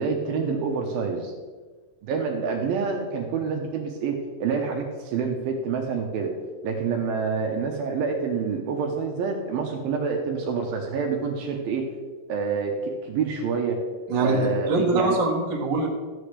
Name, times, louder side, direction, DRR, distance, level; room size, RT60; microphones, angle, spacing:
voice 1, 0.0-1.3 2.0-6.3 6.6-11.9 12.3-13.8 14.2-15.2, right 5 dB, 75° right, 2 dB, 2.3 m, -27 dB
voice 2, 14.1-15.9, right 2 dB, 50° right, -2 dB, 1.4 m, -23 dB
14.0 x 7.7 x 3.3 m, 1.4 s
omnidirectional pair, 4.8 m